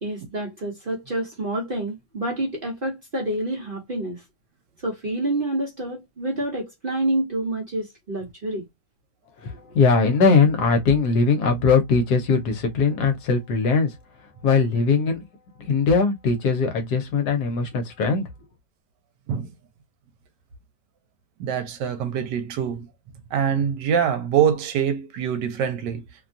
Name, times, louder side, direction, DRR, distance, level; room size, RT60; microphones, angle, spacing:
voice 1, 0.0-4.2 4.8-8.6, right 1 dB, 45° right, 0.7 m, -28 dB
voice 2, 9.4-14.0 14.4-15.2 15.6-18.2, left 4 dB, 70° left, 1.2 m, -20 dB
voice 3, 21.4-22.9 23.3-26.0, right 8 dB, 80° right, 1.2 m, -24 dB
3.0 x 2.2 x 2.5 m
omnidirectional pair, 1.9 m